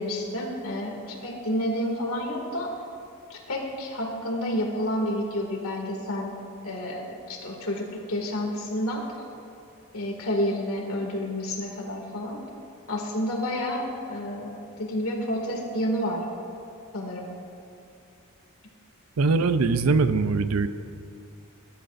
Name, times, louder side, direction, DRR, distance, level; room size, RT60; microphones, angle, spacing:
voice 1, 0.0-2.7 3.3-6.3 6.6-9.0 9.9-12.4 12.9-16.2 16.9-17.3, left 1 dB, 75° left, 0 dB, 2.4 m, -30 dB
voice 2, 19.2-20.7, right 4 dB, 75° right, 11 dB, 0.6 m, -22 dB
21.0 x 11.5 x 2.6 m, 2.5 s
head